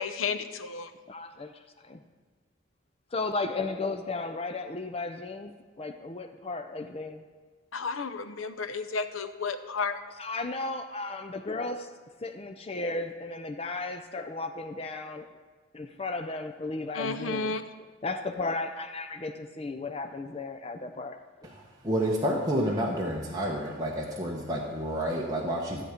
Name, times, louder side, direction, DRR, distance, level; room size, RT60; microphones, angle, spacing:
voice 1, 0.0-0.9 7.7-10.0 16.9-17.6, left 4 dB, 85° left, 0.7 m, -32 dB
voice 2, 1.1-1.5 1.8-2.0 3.1-7.2 10.2-11.9 12.2-15.3 15.7-17.6 18.0-21.2, left 3 dB, 30° left, 0.4 m, -34 dB
voice 3, 21.8-25.8, equal, 20° right, 1.0 m, -29 dB
13.5 x 8.0 x 5.0 m
head